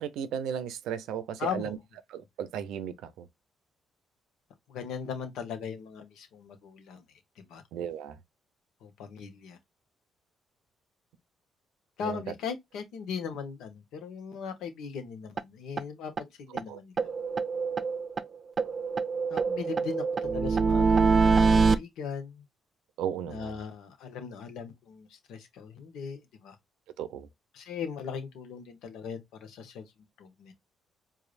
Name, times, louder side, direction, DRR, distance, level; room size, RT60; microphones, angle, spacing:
voice 1, 0.0-1.8 2.1-3.3 7.7-8.2 12.0-12.2 16.7-16.8 23.0-23.6 27.0-27.3, right 8 dB, 90° right, 0.6 m, -35 dB
voice 2, 1.4-1.7 4.7-7.0 7.4-7.6 8.8-9.6 12.0-16.9 19.3-22.4 23.3-26.6 27.5-29.8 30.2-30.5, left 6 dB, 85° left, 1.2 m, -39 dB
sound 1, 15.4-15.5 15.8-15.9 16.2-16.3 16.6-16.7 17.0-18.3 18.6-21.8, right 4 dB, 45° right, 0.5 m, -24 dB
4.8 x 2.7 x 2.5 m
cardioid pair, 90°, 0 cm